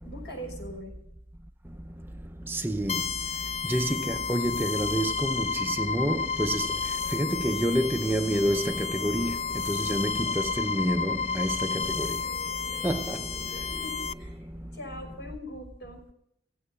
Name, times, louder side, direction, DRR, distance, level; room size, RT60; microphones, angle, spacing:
voice 1, 0.0-1.0 13.3-14.4 14.7-16.0, equal, 65° left, 5.9 m, -43 dB
voice 2, 2.5-3.0 3.7-6.7 7.1-9.4 9.7-12.1 12.8-13.2, right 1 dB, 10° right, 0.6 m, -28 dB
sound 1, 2.9-14.1, left 5 dB, 30° left, 0.5 m, -31 dB
sound 2, 6.0-15.0, right 1 dB, 10° left, 1.6 m, -50 dB
16.0 x 16.0 x 4.2 m
head